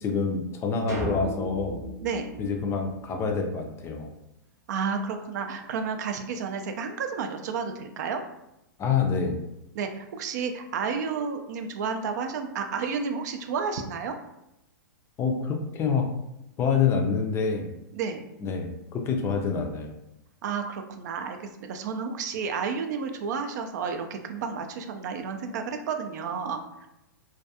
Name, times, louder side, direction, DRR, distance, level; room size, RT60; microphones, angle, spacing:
voice 1, 0.0-1.8 2.4-4.1 8.8-9.4 15.2-16.1 16.6-17.7 18.4-20.0, left 5 dB, 25° left, 3 dB, 0.4 m, -27 dB
sound 1, 0.9-3.4, equal, 25° right, 0.7 m, -36 dB
voice 2, 4.7-8.2 9.8-14.2 17.9-18.2 20.4-26.9, right 5 dB, 60° right, 6 dB, 0.4 m, -31 dB
2.3 x 2.2 x 2.7 m, 0.86 s
hypercardioid pair, 115°, 11 cm